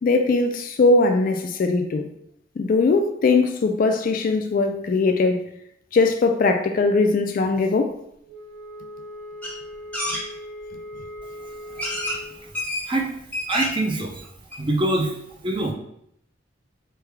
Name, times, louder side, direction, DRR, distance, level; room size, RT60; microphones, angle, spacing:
voice 1, 0.0-2.1 2.6-5.4 5.9-8.0, left 3 dB, 45° left, 0.3 m, -20 dB
Wind instrument woodwind instrument, 8.2-12.4, left 1 dB, 70° right, 1.1 m, -39 dB
sound 1, 9.4-9.5 9.9-10.2 11.1-11.2 11.8-12.2 12.5-12.9 13.2-13.8 14.2-14.3 14.5-14.6, left 1 dB, 10° left, 0.7 m, -28 dB
voice 2, 13.5-14.2 14.6-15.2 15.4-15.7, right 1 dB, 25° right, 0.5 m, -24 dB
3.2 x 2.3 x 3.3 m
head